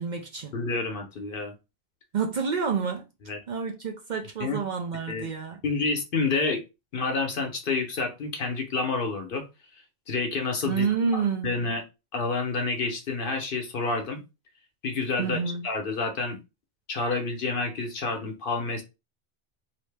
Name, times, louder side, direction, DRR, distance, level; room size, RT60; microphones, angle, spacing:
voice 1, 0.0-0.5 2.1-3.1 3.5-5.6 10.7-11.6 15.2-15.7, right 6 dB, 55° right, 0.6 m, -29 dB
voice 2, 0.5-1.5 3.3-3.4 4.4-4.6 5.1-5.3 5.6-6.6 6.9-9.4 10.1-10.9 11.1-11.8 12.1-14.2 14.8-16.4 16.9-18.8, left 3 dB, 60° left, 0.9 m, -29 dB
2.9 x 2.7 x 3.3 m
omnidirectional pair, 1.1 m